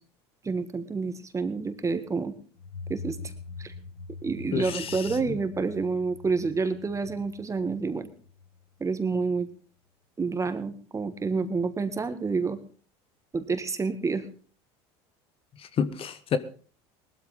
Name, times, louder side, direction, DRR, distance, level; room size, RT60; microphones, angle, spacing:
voice 1, 0.4-2.3 2.9-3.2 3.6-3.7 4.2-8.1 8.8-9.5 10.2-12.6 13.3-14.2, right 4 dB, 20° right, 1.9 m, -28 dB
sound 1, 2.6-9.1, left 4 dB, 85° left, 5.7 m, -44 dB
voice 2, 4.5-5.2 15.8-16.4, left 7 dB, 40° left, 1.3 m, -29 dB
19.0 x 13.0 x 3.9 m
supercardioid pair, 100°, 14 cm